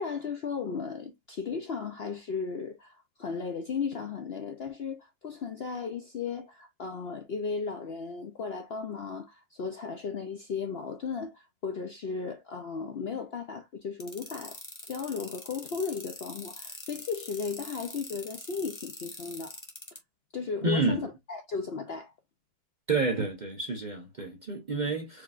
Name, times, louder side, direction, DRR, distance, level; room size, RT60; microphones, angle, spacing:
voice 1, 0.0-19.6 20.3-22.1, left 5 dB, 60° left, 0.7 m, -35 dB
sound 1, 14.0-20.0, left 2 dB, 20° left, 1.1 m, -43 dB
voice 2, 20.6-21.1 22.9-25.2, right 3 dB, 40° right, 0.7 m, -29 dB
4.7 x 3.4 x 2.4 m
omnidirectional pair, 1.7 m